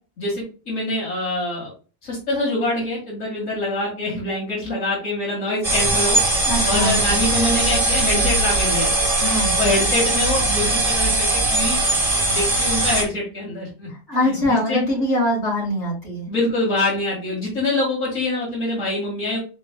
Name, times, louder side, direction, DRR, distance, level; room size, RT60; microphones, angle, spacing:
voice 1, 0.2-1.7 2.0-6.2 6.6-9.0 9.6-11.8 12.3-13.9 14.2-14.8 16.3-19.4, left 2 dB, 85° left, -4 dB, 2.4 m, -24 dB
sound 1, 5.6-13.0, right 2 dB, 30° right, 1.7 m, -20 dB
voice 2, 6.4-7.2 9.2-9.6 13.9-16.3, left 1 dB, 60° left, -4 dB, 2.7 m, -23 dB
4.6 x 4.4 x 2.2 m, 0.35 s
omnidirectional pair, 1.3 m